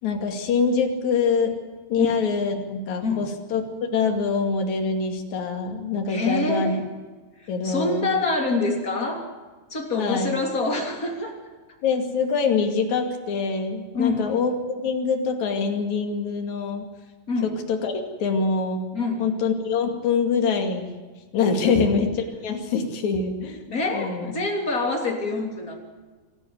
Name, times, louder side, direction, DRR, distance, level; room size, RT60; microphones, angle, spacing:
voice 1, 0.0-1.5 1.9-3.6 3.9-6.7 7.5-8.1 10.0-10.3 11.8-14.5 14.8-16.9 17.4-18.8 19.2-20.9 21.3-24.3, left 5 dB, 50° left, 4 dB, 3.4 m, -24 dB
voice 2, 6.1-6.8 7.4-9.3 9.7-11.4 13.9-14.3 17.3-17.5 18.9-19.2 21.6-21.7 23.7-25.7, left 3 dB, 20° left, 2 dB, 3.2 m, -26 dB
26.0 x 13.0 x 9.7 m, 1.3 s
omnidirectional pair, 4.9 m